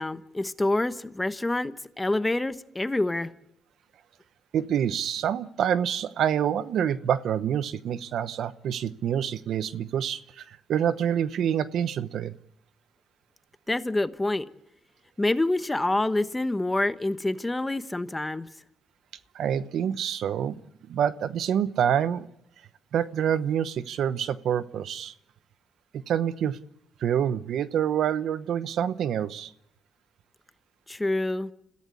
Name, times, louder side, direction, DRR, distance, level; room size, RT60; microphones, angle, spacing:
voice 1, 0.0-3.3 13.7-14.5 15.2-18.5 30.9-31.5, left 2 dB, 15° left, 1.2 m, -27 dB
voice 2, 4.5-12.3 19.3-20.6 20.9-22.3 22.9-25.1 25.9-26.6 27.0-29.5, right 9 dB, 70° right, 0.9 m, -27 dB
28.5 x 15.0 x 8.6 m
cardioid pair, 90°, 0 cm